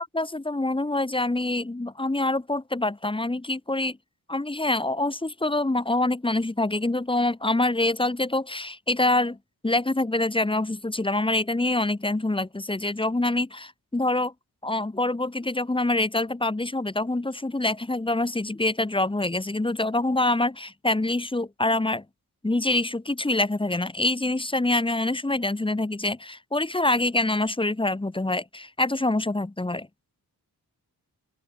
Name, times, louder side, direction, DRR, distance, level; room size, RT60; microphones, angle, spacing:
voice 1, 0.0-4.0 4.3-9.4 9.6-14.3 14.6-22.0 22.4-29.9, left 2 dB, 15° left, 0.9 m, -25 dB
open air
cardioid pair, 55°, 40 cm